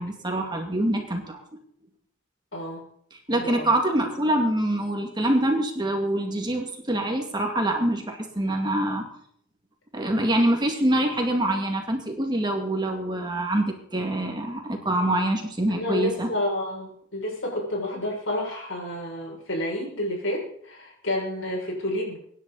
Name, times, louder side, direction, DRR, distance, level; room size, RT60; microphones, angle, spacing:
voice 1, 0.0-1.4 3.1-9.1 9.9-16.3, right 1 dB, 20° right, 3 dB, 2.4 m, -25 dB
voice 2, 3.3-3.7 15.7-22.2, left 1 dB, 75° left, -2 dB, 6.9 m, -30 dB
24.5 x 11.0 x 4.2 m, 0.65 s
head